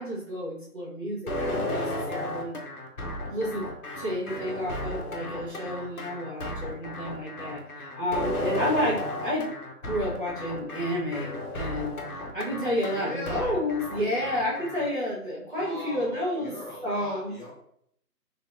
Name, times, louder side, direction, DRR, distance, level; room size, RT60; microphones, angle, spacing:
voice 1, 0.0-2.5 3.3-3.7 3.9-9.5 9.8-12.0 12.3-16.5 16.8-17.4, left 1 dB, 35° right, -8 dB, 1.3 m, -30 dB
sound 1, 1.3-14.9, left 1 dB, 65° left, 0.9 m, -34 dB
voice 2, 12.9-13.5 15.5-17.5, left 1 dB, 30° left, -6 dB, 0.9 m, -40 dB
4.1 x 3.1 x 2.6 m, 0.70 s
figure-of-eight pair, 170°, 47 cm